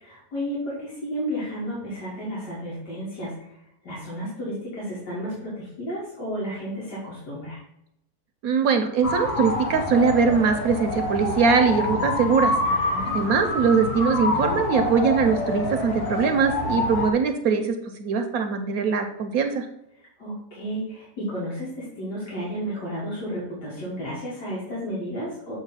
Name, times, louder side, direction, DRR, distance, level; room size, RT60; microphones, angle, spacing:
voice 1, 0.0-3.6 3.8-7.6 12.6-13.2 20.2-25.5, equal, 85° left, -7 dB, 2.4 m, -32 dB
voice 2, 8.4-12.5 13.1-19.7, right 5 dB, 65° right, 6 dB, 1.1 m, -22 dB
sound 1, 9.0-17.1, left 2 dB, 70° left, 1.5 m, -27 dB
7.4 x 3.1 x 5.5 m, 0.82 s
omnidirectional pair, 1.7 m